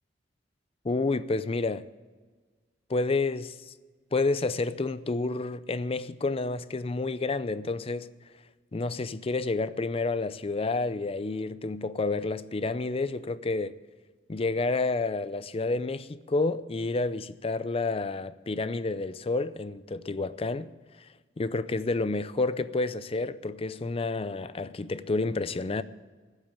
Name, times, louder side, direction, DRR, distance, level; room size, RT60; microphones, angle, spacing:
voice 1, 0.8-1.8 2.9-3.7 4.1-8.1 8.7-13.7 14.3-20.7 21.4-25.8, left 3 dB, 30° left, 0.5 m, -29 dB
14.5 x 8.2 x 8.6 m
head